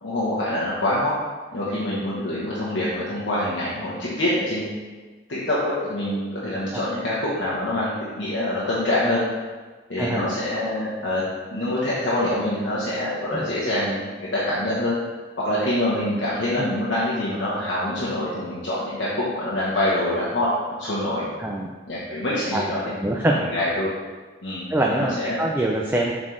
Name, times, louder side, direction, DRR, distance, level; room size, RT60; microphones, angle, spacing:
voice 1, 0.0-1.1 1.5-4.7 5.3-9.2 9.9-11.2 11.5-15.0 15.4-21.3 21.9-23.0 23.2-23.9 24.4-25.4, left 1 dB, 70° left, -8 dB, 1.1 m, -25 dB
voice 2, 21.4-21.7 22.5-22.7 23.0-23.5 24.7-26.1, right 1 dB, 10° right, -1 dB, 0.3 m, -24 dB
7.3 x 4.1 x 3.2 m, 1.4 s
head